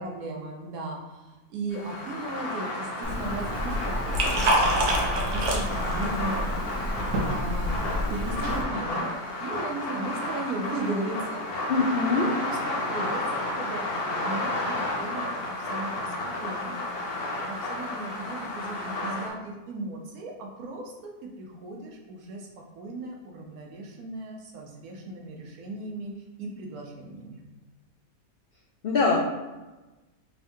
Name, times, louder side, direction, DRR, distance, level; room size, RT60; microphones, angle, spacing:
voice 1, 0.0-6.5 7.2-9.1 9.4-11.5 12.4-13.8 14.1-16.8 17.5-22.5 22.8-27.4, right 2 dB, 85° right, 0 dB, 1.2 m, -36 dB
sound 1, 1.7-19.3, left 2 dB, 50° left, 0.8 m, -32 dB
Liquid, 3.0-8.6, equal, 60° right, 0.9 m, -27 dB
voice 2, 11.7-12.3 28.8-29.2, left 4 dB, 80° left, -2 dB, 0.5 m, -23 dB
3.6 x 3.5 x 2.6 m, 1.1 s
omnidirectional pair, 1.5 m